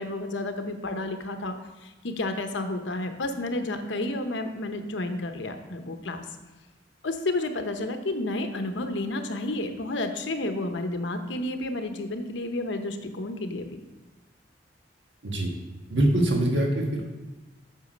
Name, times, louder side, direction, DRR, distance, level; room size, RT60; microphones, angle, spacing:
voice 1, 0.0-6.3 7.0-13.7, left 2 dB, 80° left, 7 dB, 0.9 m, -31 dB
voice 2, 15.9-17.0, right 1 dB, 75° right, 0 dB, 1.5 m, -23 dB
8.3 x 6.3 x 5.1 m, 1.1 s
head